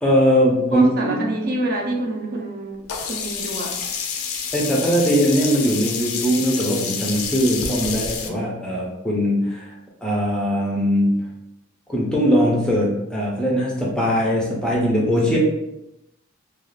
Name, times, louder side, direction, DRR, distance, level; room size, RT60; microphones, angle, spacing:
voice 1, 0.0-1.1 4.5-9.7 10.0-11.2 11.9-15.4, equal, 5° left, -4 dB, 0.4 m, -20 dB
voice 2, 0.7-3.7, right 1 dB, 45° right, -1 dB, 0.5 m, -27 dB
Sink (filling or washing), 2.9-8.3, left 6 dB, 90° left, 0.4 m, -28 dB
2.3 x 2.3 x 3.1 m, 0.87 s
head